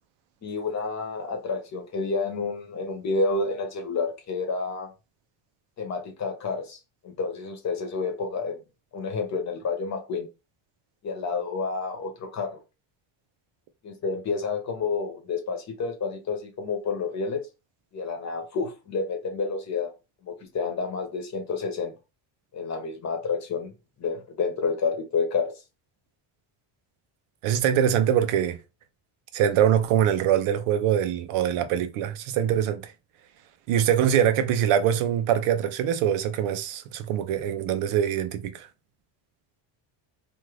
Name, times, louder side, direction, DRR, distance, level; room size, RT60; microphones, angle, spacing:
voice 1, 0.4-4.9 5.8-6.8 7.0-8.6 8.9-10.3 11.0-12.6 13.8-17.4 17.9-19.9 20.3-21.9 22.5-23.7 24.0-25.5, left 4 dB, 35° left, 0.8 m, -29 dB
voice 2, 27.4-28.6 29.3-32.9 33.7-38.7, right 9 dB, 85° right, 0.7 m, -23 dB
2.6 x 2.5 x 3.1 m
cardioid pair, 160°, 49 cm